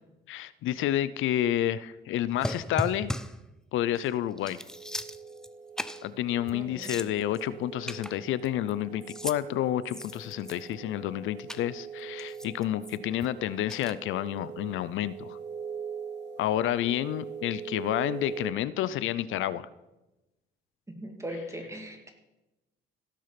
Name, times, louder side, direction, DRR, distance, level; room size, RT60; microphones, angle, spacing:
voice 1, 0.3-3.1 3.7-4.6 6.0-15.4 16.4-19.7, left 12 dB, 80° left, 17 dB, 0.5 m, -30 dB
sound 1, 2.4-3.4 4.0-4.1 4.4-5.5 5.8-6.1 6.5-6.6 6.8-7.4 7.9-8.7 9.0-9.4 9.8-10.8 11.5-11.6 12.2-13.3 13.7-13.9, left 1 dB, 5° left, 0.5 m, -37 dB
sound 2, 4.7-18.5, right 6 dB, 60° right, 1.2 m, -43 dB
voice 2, 6.5-7.0 20.9-22.1, equal, 15° right, 3 dB, 2.4 m, -39 dB
16.5 x 6.4 x 5.8 m, 1.0 s
cardioid pair, 90°, 20 cm